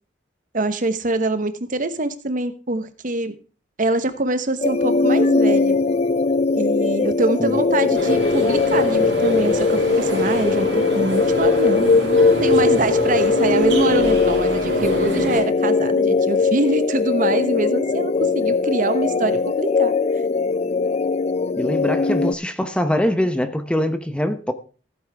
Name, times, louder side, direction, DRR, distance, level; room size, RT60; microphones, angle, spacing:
voice 1, 0.5-3.3 3.8-5.8 6.5-19.9, right 2 dB, 45° right, 1.1 m, -24 dB
sound 1, 4.6-22.3, left 4 dB, 35° left, 0.4 m, -20 dB
sound 2, 7.9-15.4, right 1 dB, 70° right, 3.4 m, -28 dB
sound 3, 8.5-13.9, right 2 dB, 20° right, 3.5 m, -46 dB
voice 2, 21.6-24.5, equal, 5° left, 0.9 m, -23 dB
15.0 x 8.8 x 3.5 m
head